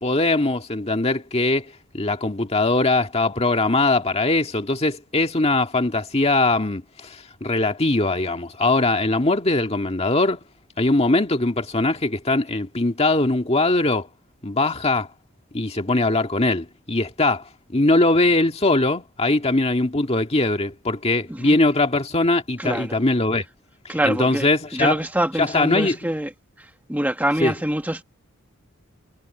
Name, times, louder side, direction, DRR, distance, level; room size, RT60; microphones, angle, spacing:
voice 1, 0.0-10.4 10.8-14.1 14.4-15.1 15.5-23.4 23.9-25.0 25.4-26.0 27.4-27.5, left 2 dB, 30° left, 1.8 m, -21 dB
voice 2, 22.6-23.0 23.9-26.3 26.6-28.0, right 1 dB, 10° right, 1.4 m, -25 dB
head